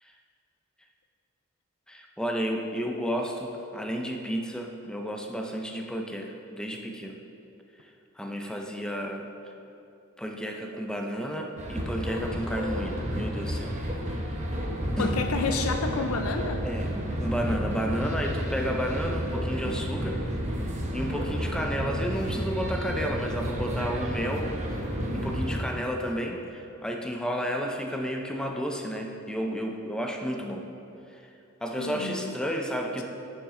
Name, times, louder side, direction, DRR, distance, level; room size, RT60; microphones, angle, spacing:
voice 1, 1.9-7.2 8.2-9.3 10.2-13.8 14.1-14.3 14.6-14.7 15.0-15.2 16.6-16.9 17.2-20.2 20.6-24.6 25.1-30.7 31.1-31.2 31.6-33.0, equal, 5° left, 2 dB, 0.5 m, -32 dB
sound 1, 11.6-25.6, equal, 35° right, 0.9 m, -31 dB
voice 2, 15.0-16.7 31.7-32.4, left 3 dB, 90° left, 5 dB, 0.5 m, -30 dB
8.8 x 6.2 x 3.7 m, 2.8 s
head